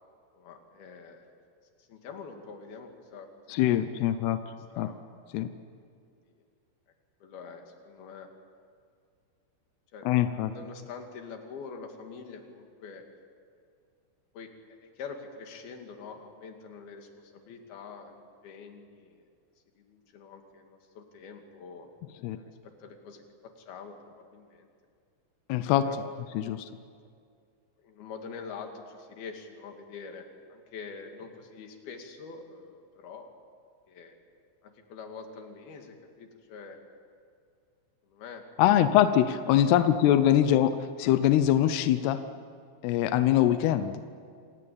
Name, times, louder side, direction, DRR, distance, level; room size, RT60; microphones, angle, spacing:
voice 1, 0.3-1.3 1.8-5.0 7.2-8.3 9.9-13.1 14.3-19.3 19.8-21.9 22.3-24.7 25.8-26.1 27.8-33.3 33.9-34.2 34.6-36.8 38.0-38.4 39.7-40.0, left 5 dB, 55° left, 4 dB, 3.7 m, -45 dB
voice 2, 3.5-4.4 4.8-4.9 5.3-5.5 10.1-10.5 22.2-22.4 25.5-25.8 26.4-26.6 38.6-40.7 41.0-42.2 42.8-44.0, left 11 dB, 80° left, 11 dB, 2.3 m, -23 dB
27.0 x 19.5 x 8.6 m, 2.2 s
omnidirectional pair, 5.6 m